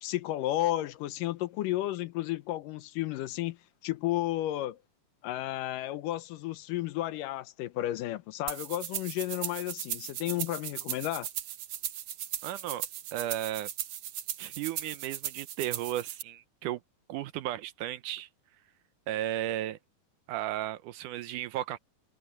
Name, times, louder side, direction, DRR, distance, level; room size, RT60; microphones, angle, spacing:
voice 1, 0.0-3.6 3.8-4.8 5.2-11.3, left 15 dB, 85° left, 2.4 m, -32 dB
sound 1, 8.5-16.2, right 11 dB, 65° right, 2.0 m, -37 dB
voice 2, 12.4-12.9 13.1-13.7 14.4-16.8 17.1-18.3 19.1-19.8 20.3-21.8, right 13 dB, 80° right, 2.2 m, -34 dB
omnidirectional pair, 3.9 m